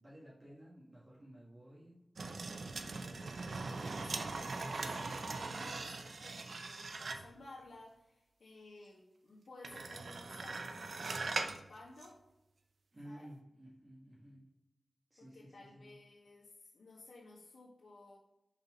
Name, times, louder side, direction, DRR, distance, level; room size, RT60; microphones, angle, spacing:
voice 1, 0.0-2.0 12.9-14.4 15.1-15.9, equal, 30° right, -6 dB, 1.7 m, -54 dB
sound 1, 2.2-7.4 9.6-11.6 12.0-12.1, right 3 dB, 70° right, 0.6 m, -41 dB
voice 2, 2.7-12.2 13.0-13.3 15.2-18.2, left 2 dB, 85° left, -9 dB, 1.7 m, -56 dB
6.1 x 4.4 x 5.3 m, 0.92 s
wide cardioid pair, 75°, 0 cm